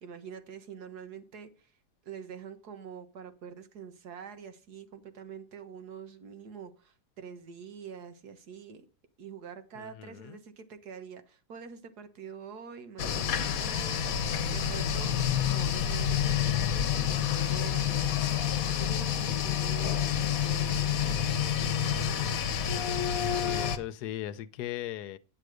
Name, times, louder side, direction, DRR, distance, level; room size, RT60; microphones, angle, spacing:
voice 1, 0.0-1.5 2.1-8.8 9.2-15.2 15.5-22.2, right 6 dB, 75° right, 1.8 m, -46 dB
voice 2, 9.8-10.4 23.4-25.2, left 13 dB, 80° left, 1.2 m, -38 dB
sound 1, 13.0-23.8, left 8 dB, 65° left, 1.2 m, -28 dB
9.7 x 8.0 x 4.9 m
omnidirectional pair, 1.7 m